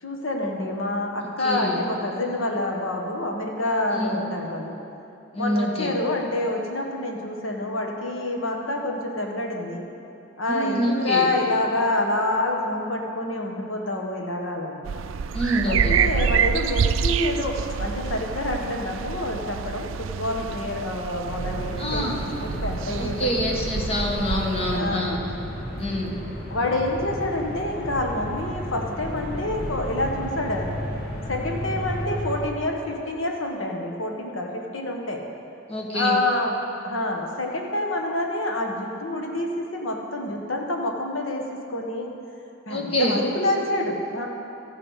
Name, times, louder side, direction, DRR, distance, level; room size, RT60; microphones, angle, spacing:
voice 1, 0.0-4.8 5.4-9.8 10.4-14.9 15.6-23.7 24.7-25.1 26.5-30.7 31.3-35.2 35.9-42.1 42.7-44.3, left 2 dB, 80° left, 1 dB, 1.3 m, -27 dB
voice 2, 1.4-1.8 3.9-4.2 5.3-5.9 10.4-11.3 15.3-16.0 21.8-22.2 23.0-25.2 25.8-26.1 35.7-36.2 42.7-43.2, equal, 30° left, -1 dB, 1.4 m, -26 dB
sound 1, 14.8-24.8, right 7 dB, 80° right, 0.4 m, -27 dB
sound 2, 21.3-32.4, equal, 50° left, 2.0 m, -33 dB
13.5 x 7.2 x 5.7 m, 2.7 s
head